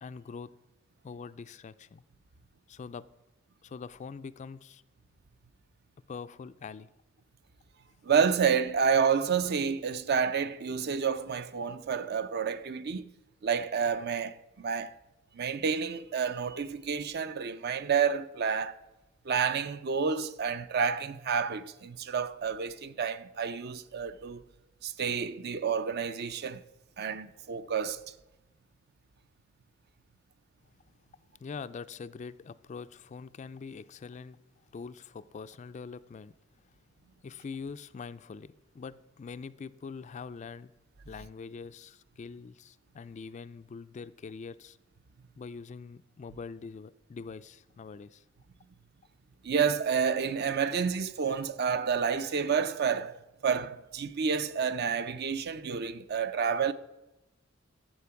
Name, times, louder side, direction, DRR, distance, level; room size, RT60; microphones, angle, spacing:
voice 1, 0.0-0.5 1.0-2.0 2.7-3.0 3.6-4.8 6.1-6.9 31.4-34.4 34.7-36.3 37.2-40.7 41.0-44.8 45.4-48.2, left 5 dB, 35° left, 0.3 m, -43 dB
voice 2, 8.0-13.1 13.4-14.9 15.3-18.8 19.2-24.4 24.8-26.6 27.0-28.0 49.4-53.2 53.4-56.7, right 6 dB, 50° right, 0.5 m, -29 dB
12.0 x 7.6 x 5.8 m
head